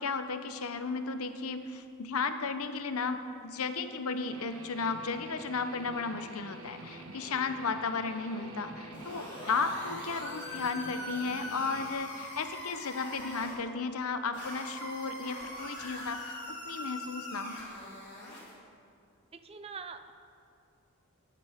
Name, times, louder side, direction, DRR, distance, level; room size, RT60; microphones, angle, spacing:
voice 1, 0.0-17.6, left 4 dB, 75° left, 9 dB, 0.8 m, -34 dB
Guitar, 4.3-11.9, right 2 dB, 70° right, 1.2 m, -47 dB
sound 1, 8.9-13.5 14.3-18.5, left 1 dB, 35° left, 3.9 m, -42 dB
voice 2, 19.3-20.1, right 5 dB, 25° right, 9 dB, 0.5 m, -44 dB
14.5 x 10.5 x 5.0 m, 2.5 s
head